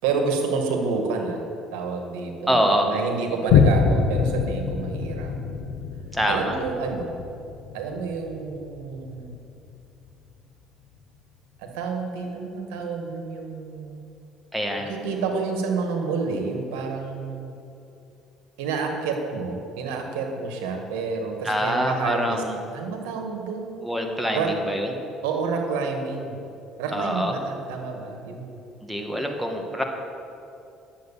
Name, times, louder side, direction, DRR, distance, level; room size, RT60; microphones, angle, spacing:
voice 1, 0.0-1.4 1.7-5.3 6.3-7.2 7.7-9.4 11.6-14.0 14.8-17.5 18.6-22.4 22.7-23.8 24.3-24.5 25.2-26.4 26.8-28.6, right 4 dB, 90° right, 3 dB, 1.7 m, -29 dB
voice 2, 2.5-2.9 6.1-6.6 14.5-14.9 21.4-22.6 23.8-24.9 26.9-27.3 28.8-29.8, equal, ahead, 2 dB, 1.7 m, -25 dB
Boom, 3.5-10.4 10.9-11.0, left 6 dB, 75° left, 0.8 m, -25 dB
10.5 x 7.8 x 7.2 m, 2.6 s
supercardioid pair, 95°, 0 cm